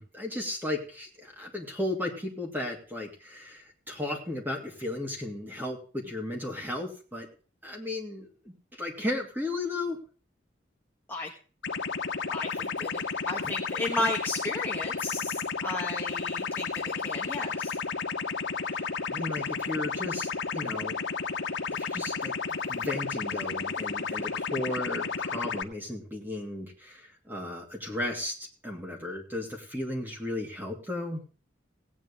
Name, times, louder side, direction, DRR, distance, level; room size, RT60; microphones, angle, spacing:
voice 1, 0.0-7.3 7.6-8.5 8.8-10.0 18.7-21.0 21.8-22.3 22.7-28.3 28.6-31.2, left 1 dB, 10° right, 1 dB, 2.9 m, -35 dB
sound 1, 11.6-25.6, left 5 dB, 85° left, 1.2 m, -32 dB
voice 2, 12.3-17.8, left 2 dB, 10° left, -1 dB, 1.3 m, -34 dB
17.5 x 9.4 x 3.6 m, 0.38 s
head